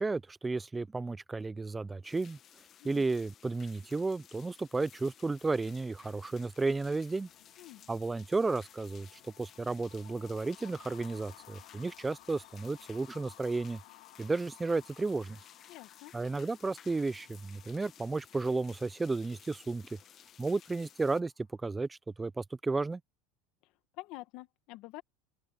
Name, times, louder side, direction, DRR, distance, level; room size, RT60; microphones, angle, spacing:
voice 1, 0.0-2.4 2.8-7.3 7.9-9.1 9.4-13.8 14.2-15.4 16.1-19.8 20.4-21.3 21.6-23.0, right 3 dB, 10° right, 0.3 m, -33 dB
sound 1, 2.0-21.2, left 9 dB, 35° left, 1.3 m, -57 dB
sound 2, 3.8-21.6, left 25 dB, 80° left, 6.6 m, -60 dB
voice 2, 15.7-16.1 24.0-25.0, left 18 dB, 55° left, 1.6 m, -47 dB
open air
supercardioid pair, 145°, 0 cm